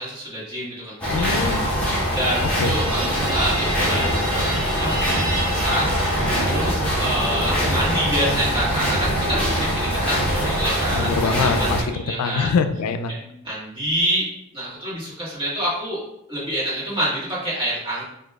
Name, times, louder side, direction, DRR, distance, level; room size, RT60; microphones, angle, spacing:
voice 1, 0.0-1.3 2.0-11.7 12.0-12.5 13.1-14.2 14.5-16.0 16.3-18.0, right 1 dB, 25° right, -8 dB, 1.3 m, -27 dB
sound 1, 1.0-11.8, equal, 5° left, 0.8 m, -23 dB
voice 2, 1.1-1.6 2.6-2.7 10.9-13.1, left 5 dB, 90° left, 9 dB, 0.3 m, -24 dB
sound 2, 2.2-6.9, right 1 dB, 70° right, 1.1 m, -32 dB
4.9 x 2.3 x 2.3 m, 0.79 s
head